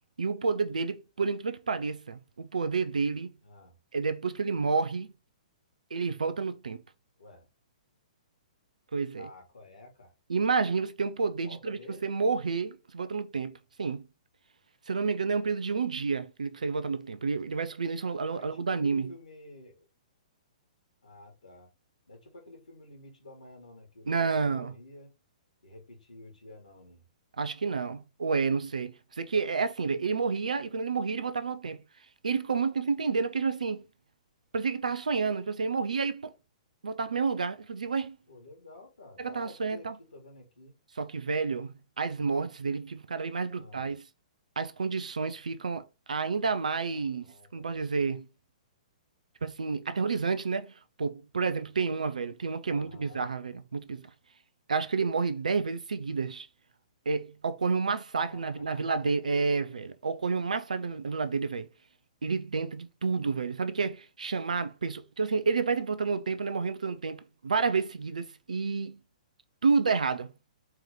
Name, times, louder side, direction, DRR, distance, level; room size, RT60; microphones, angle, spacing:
voice 1, 0.2-3.3 3.9-5.1 5.9-6.8 8.9-9.3 10.3-14.1 14.9-19.1 24.1-24.7 27.4-31.8 32.2-33.9 34.5-36.3 36.8-38.2 39.2-40.0 41.0-44.0 44.6-48.3 49.4-54.1 54.7-56.5 57.1-61.7 62.2-69.0 69.6-70.3, right 4 dB, 70° right, 0.6 m, -30 dB
voice 2, 3.4-3.8 7.2-7.5 9.2-10.1 11.4-12.1 18.3-19.9 21.0-21.7 22.1-25.1 25.6-27.1 38.3-40.7 43.5-43.9 46.8-47.8 52.6-53.3 58.3-58.9, left 2 dB, 70° left, 2.3 m, -51 dB
4.5 x 3.1 x 3.8 m
figure-of-eight pair, 115°, 4 cm